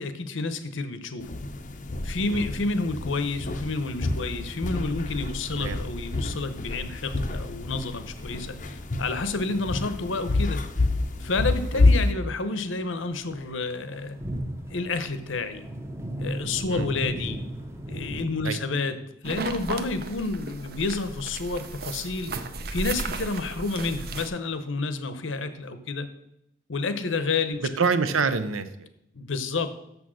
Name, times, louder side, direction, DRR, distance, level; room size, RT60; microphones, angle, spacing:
voice 1, 0.0-1.4 2.0-10.6 11.2-14.2 14.7-15.7 16.2-17.4 17.9-19.0 19.2-22.3 22.7-26.1 26.7-27.7 29.1-29.8, left 3 dB, 70° left, 11 dB, 0.8 m, -30 dB
sound 1, 1.2-12.1, left 2 dB, 35° left, 0.6 m, -28 dB
sound 2, 3.8-18.3, right 1 dB, 15° right, 0.7 m, -39 dB
sound 3, 19.2-24.3, right 3 dB, 45° right, 0.6 m, -35 dB
voice 2, 27.6-28.9, right 5 dB, 80° right, 11 dB, 0.7 m, -26 dB
6.9 x 6.1 x 6.3 m, 0.79 s
head